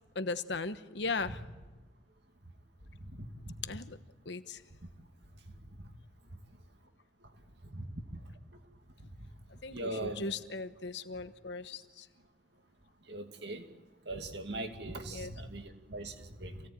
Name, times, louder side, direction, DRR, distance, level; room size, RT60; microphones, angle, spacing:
voice 1, 0.1-1.4 3.6-4.0 4.3-4.6 9.6-12.1 15.1-15.3, left 3 dB, 65° left, 1.2 m, -37 dB
voice 2, 3.1-3.5 7.7-7.8 9.7-10.3 13.1-13.6 14.1-16.6, right 1 dB, 60° right, 2.4 m, -40 dB
27.5 x 17.5 x 9.1 m
head